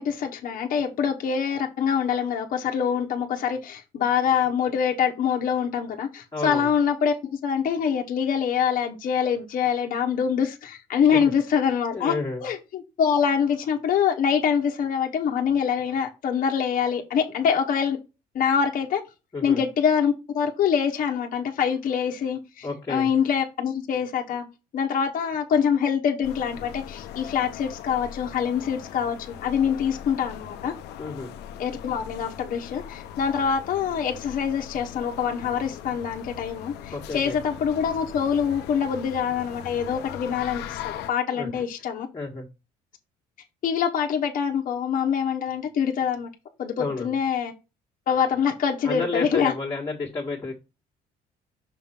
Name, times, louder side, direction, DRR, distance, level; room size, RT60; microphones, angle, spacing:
voice 1, 0.0-12.1 12.4-18.0 18.3-19.0 19.4-24.4 24.7-30.7 31.6-42.1 43.6-46.3 46.6-47.5 48.1-49.5, left 7 dB, 55° left, 1.0 m, -25 dB
voice 2, 6.3-6.7 11.9-12.4 19.3-19.6 22.6-23.1 31.0-31.3 36.9-37.4 41.3-41.6 42.1-42.5 46.8-47.1 48.8-50.5, left 3 dB, 25° left, 1.5 m, -31 dB
sound 1, 26.2-41.1, left 10 dB, 80° left, 0.7 m, -40 dB
6.2 x 3.6 x 4.4 m
cardioid pair, 110°, 17 cm